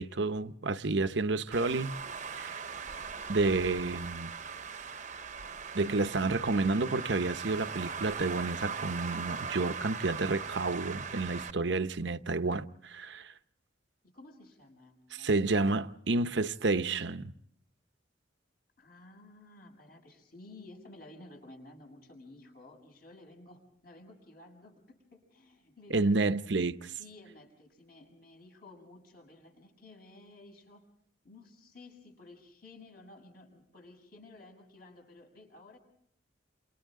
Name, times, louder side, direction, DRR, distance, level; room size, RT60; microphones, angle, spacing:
voice 1, 0.0-2.0 2.4-2.6 3.3-4.3 5.7-13.3 15.1-17.3 25.9-26.9, right 3 dB, 65° right, 0.8 m, -30 dB
Traffic noise roadway noise, 1.5-11.5, right 6 dB, 35° right, 1.0 m, -40 dB
voice 2, 14.0-15.3 18.8-26.1 27.0-30.8 31.2-35.8, left 2 dB, 50° left, 6.8 m, -54 dB
29.0 x 28.0 x 3.7 m
head